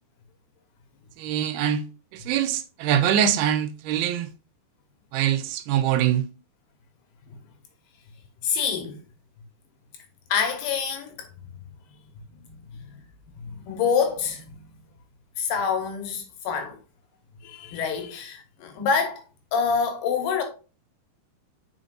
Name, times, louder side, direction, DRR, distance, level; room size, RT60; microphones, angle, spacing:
voice 1, 1.2-4.3 5.1-6.2, right 10 dB, 85° right, 2.5 m, -24 dB
voice 2, 8.4-9.0 10.3-11.6 12.3-13.0 13.4-14.8 15.4-16.8 17.4-19.2 19.5-20.4, left 6 dB, 80° left, 3.3 m, -27 dB
7.9 x 5.1 x 2.6 m
omnidirectional pair, 4.6 m